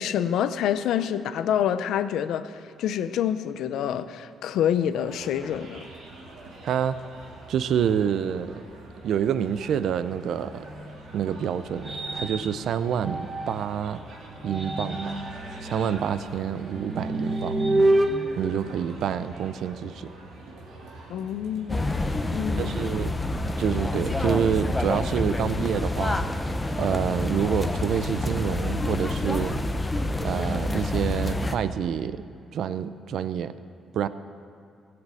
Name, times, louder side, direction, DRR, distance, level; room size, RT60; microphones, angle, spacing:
voice 1, 0.0-5.9 21.1-21.9 22.3-22.9, left 9 dB, 80° left, 12 dB, 0.6 m, -27 dB
sound 1, 4.9-24.9, right 2 dB, 90° right, 2.5 m, -45 dB
voice 2, 6.6-7.0 7.5-8.6 9.0-10.6 11.1-14.0 14.4-15.1 15.6-17.6 18.4-20.1 22.6-23.1 23.6-26.2 26.8-29.5 30.2-32.2 32.5-33.5 33.9-34.1, right 8 dB, 70° right, 13 dB, 0.5 m, -27 dB
sound 2, 10.6-13.8 14.3-19.5, right 1 dB, 25° right, 1.2 m, -29 dB
sound 3, 21.7-31.6, left 2 dB, 15° left, 0.9 m, -27 dB
16.5 x 7.8 x 7.6 m, 2.4 s
cardioid pair, 90°, 0 cm